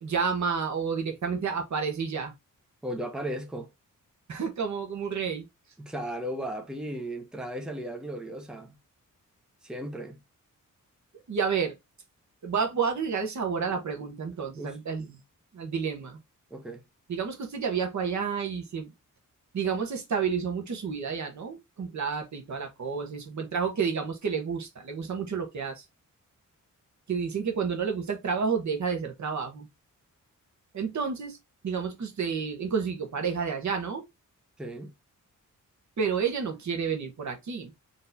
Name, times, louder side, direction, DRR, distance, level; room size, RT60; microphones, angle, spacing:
voice 1, 0.0-2.3 4.3-5.4 11.3-11.7 12.4-15.2 15.5-16.2 17.1-18.9 19.5-25.9 27.1-29.7 30.7-31.4 31.6-34.0 36.0-37.7, right 6 dB, 60° right, 1.4 m, -30 dB
voice 2, 2.8-3.7 5.8-8.8 9.6-10.2 14.0-14.1 14.6-15.1 16.5-16.8 34.6-34.9, right 1 dB, ahead, 0.8 m, -36 dB
4.2 x 3.2 x 2.7 m
wide cardioid pair, 105°, 32 cm